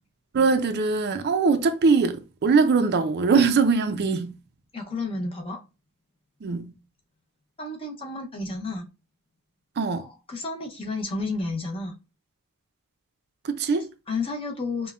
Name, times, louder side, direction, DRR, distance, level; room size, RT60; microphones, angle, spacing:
voice 1, 0.3-4.3 6.4-6.7 9.8-10.1 13.4-13.9, right 4 dB, 50° right, 0.4 m, -22 dB
voice 2, 4.7-5.6 7.6-8.9 10.0-11.9 14.1-14.9, left 3 dB, 25° left, 0.7 m, -31 dB
5.3 x 2.1 x 2.3 m
head